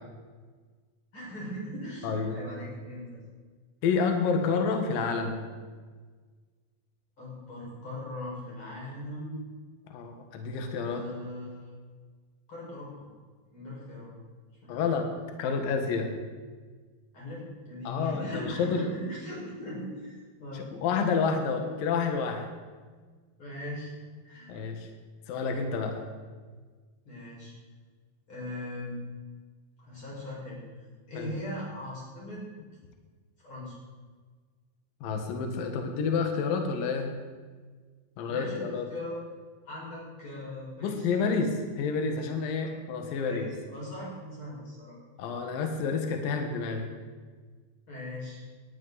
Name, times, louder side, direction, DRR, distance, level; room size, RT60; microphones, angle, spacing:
voice 1, 1.1-3.2 7.2-9.4 10.8-11.7 12.5-13.1 13.4-14.1 14.6-15.0 17.1-20.7 23.4-23.9 24.2-24.6 27.0-27.5 28.3-29.0 29.8-30.6 31.1-32.4 33.4-33.8 38.3-39.2 39.6-41.1 42.6-42.8 43.1-45.0 47.9-48.4, left 1 dB, 30° left, -6 dB, 6.3 m, -39 dB
voice 2, 2.0-2.4 3.8-5.4 9.9-11.0 14.7-15.1 15.4-16.1 17.8-18.9 20.5-22.5 24.5-24.9 25.3-26.0 31.1-31.3 35.0-37.1 38.2-38.9 40.8-43.5 45.2-46.9, left 5 dB, 60° left, 4 dB, 2.8 m, -29 dB
18.0 x 12.0 x 4.1 m, 1.5 s
omnidirectional pair, 5.1 m